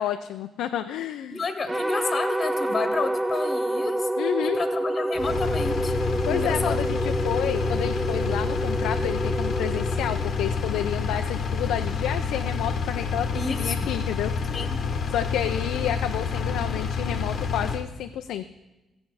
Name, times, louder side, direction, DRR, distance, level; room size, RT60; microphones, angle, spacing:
voice 1, 0.0-1.4 4.2-4.6 6.3-7.0 7.2-14.5 15.1-18.5, left 10 dB, 90° left, 7 dB, 0.4 m, -30 dB
voice 2, 1.3-4.1 4.4-5.9 6.3-6.8 13.3-13.9 14.5-14.8, left 4 dB, 40° left, 8 dB, 1.1 m, -30 dB
sound 1, 1.7-11.0, right 1 dB, 15° right, 0.5 m, -28 dB
Engine, 5.2-17.8, left 5 dB, 55° left, 0.9 m, -28 dB
16.0 x 7.0 x 4.8 m, 1.0 s
cardioid pair, 90°, 0 cm